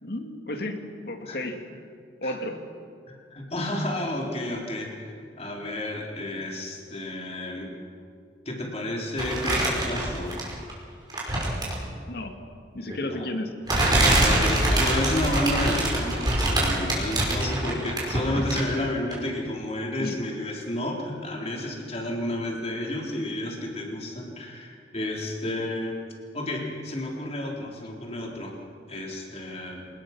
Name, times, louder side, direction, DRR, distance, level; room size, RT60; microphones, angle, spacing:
voice 1, 0.0-1.8 2.2-2.6 12.1-12.3 12.7-13.5 18.0-18.1 20.0-20.2, left 1 dB, 60° left, 5 dB, 2.3 m, -33 dB
voice 2, 3.1-7.8 8.5-10.4 13.1-13.3 14.0-26.0 26.3-28.6 28.9-29.8, left 1 dB, 35° left, 0 dB, 4.1 m, -31 dB
sound 1, 9.2-10.7 11.1-11.9 12.9-13.0 13.7-18.8 19.1-19.2, right 1 dB, 25° right, 5.5 m, -24 dB
27.0 x 20.0 x 6.2 m, 2.2 s
head